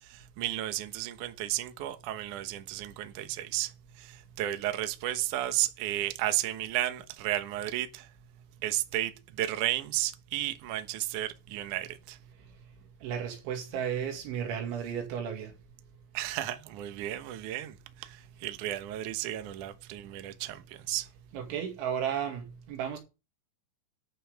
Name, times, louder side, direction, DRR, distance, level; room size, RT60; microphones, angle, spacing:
voice 1, 0.0-8.1 8.6-12.2 16.1-21.1, right 14 dB, 70° right, 2.0 m, -33 dB
voice 2, 13.0-15.5 21.3-23.0, right 8 dB, 90° right, 4.6 m, -33 dB
11.0 x 5.9 x 6.5 m
omnidirectional pair, 5.2 m